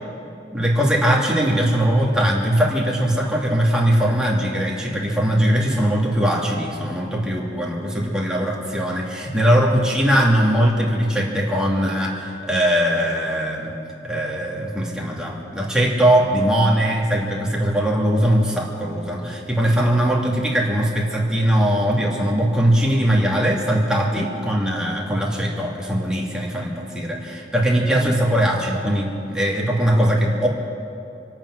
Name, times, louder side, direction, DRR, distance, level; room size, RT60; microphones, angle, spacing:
voice 1, 0.5-13.7 14.0-30.5, equal, 5° right, -3 dB, 2.4 m, -20 dB
26.0 x 8.8 x 6.3 m, 2.7 s
head